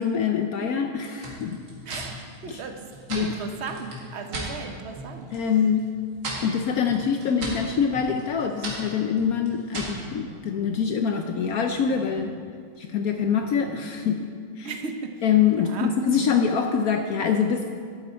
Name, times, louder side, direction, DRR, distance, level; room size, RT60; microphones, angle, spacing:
voice 1, 0.0-1.6 2.5-2.6 3.1-3.3 5.3-5.9 6.4-12.3 12.8-14.3 14.6-14.7 15.2-17.7, left 7 dB, 70° left, 5 dB, 0.9 m, -24 dB
sound 1, 1.2-4.5 4.9-5.5 5.8-10.1, right 2 dB, 70° right, 2.6 m, -37 dB
voice 2, 1.8-2.9 3.1-5.3 14.6-15.2 15.5-15.9 16.2-16.5, right 5 dB, 50° right, 5 dB, 0.9 m, -36 dB
sound 2, 7.2-8.1 10.0-10.6 11.7-12.3 13.2-13.8, left 2 dB, 35° right, 2.2 m, -46 dB
13.0 x 8.9 x 4.4 m, 2.1 s
omnidirectional pair, 2.0 m